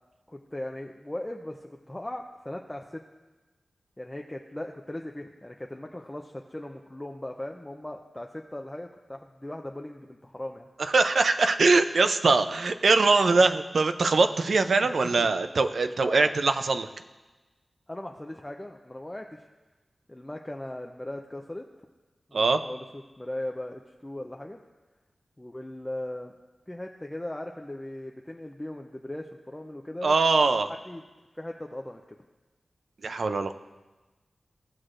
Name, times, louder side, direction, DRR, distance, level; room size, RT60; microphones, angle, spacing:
voice 1, 0.3-3.0 4.0-10.7 14.8-15.3 16.0-16.4 17.9-19.4 20.1-21.6 22.3-24.6 25.4-26.3 26.7-31.0 31.3-32.0, left 1 dB, 15° left, 2 dB, 0.5 m, -38 dB
voice 2, 10.8-16.9 22.3-22.6 30.0-30.7 33.0-33.6, right 3 dB, 75° right, 9 dB, 0.4 m, -22 dB
16.0 x 6.3 x 2.5 m, 1.2 s
wide cardioid pair, 75°, 0 cm